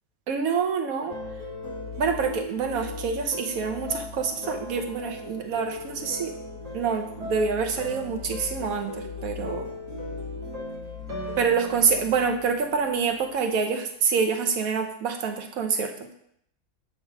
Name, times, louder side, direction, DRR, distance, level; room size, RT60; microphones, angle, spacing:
voice 1, 0.3-1.1 2.0-6.3 6.7-9.7 11.4-15.9, right 5 dB, 65° right, 5 dB, 1.2 m, -26 dB
sound 1, 1.1-13.2, left 2 dB, 85° right, 2.2 m, -37 dB
7.4 x 3.3 x 5.9 m, 0.72 s
omnidirectional pair, 1.7 m